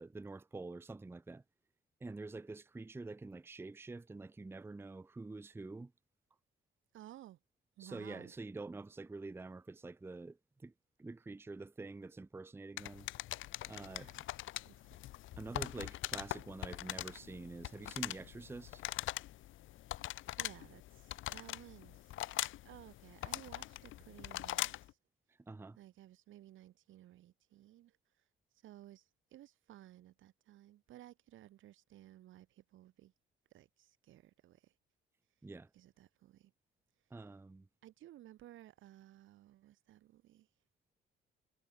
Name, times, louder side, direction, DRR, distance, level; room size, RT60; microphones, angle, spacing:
voice 1, 0.0-1.4 2.0-5.9 7.8-10.4 10.6-10.7 11.0-13.1 13.7-14.1 15.4-18.8 25.5-25.8 35.4-35.7 37.1-37.7, right 3 dB, 10° right, 0.5 m, -47 dB
voice 2, 6.9-7.4 7.8-8.3 13.7-14.3 14.7-15.0 20.1-22.1 22.6-24.7 25.8-27.9 28.6-29.0 29.3-33.1 33.5-34.7 35.7-36.5 37.8-40.5, right 13 dB, 80° right, 1.5 m, -57 dB
sound 1, 12.8-24.9, left 15 dB, 80° left, 0.8 m, -42 dB
cardioid pair, 90°, 20 cm